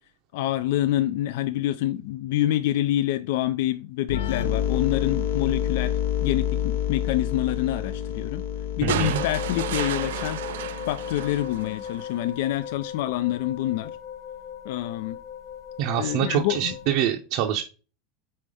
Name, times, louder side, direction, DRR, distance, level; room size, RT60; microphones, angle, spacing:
voice 1, 0.3-8.4 8.8-13.9 14.6-15.2 16.0-16.7, left 13 dB, 55° left, 0.3 m, -27 dB
sound 1, 4.1-11.7, left 10 dB, 75° left, 0.8 m, -28 dB
voice 2, 8.8-9.2 15.8-17.6, right 10 dB, 40° right, 0.6 m, -25 dB
sound 2, 8.9-12.2 13.5-13.6, right 13 dB, 85° right, 0.4 m, -33 dB
sound 3, 9.0-16.9, left 9 dB, 30° left, 1.1 m, -38 dB
5.5 x 4.4 x 4.9 m
supercardioid pair, 175°, 0 cm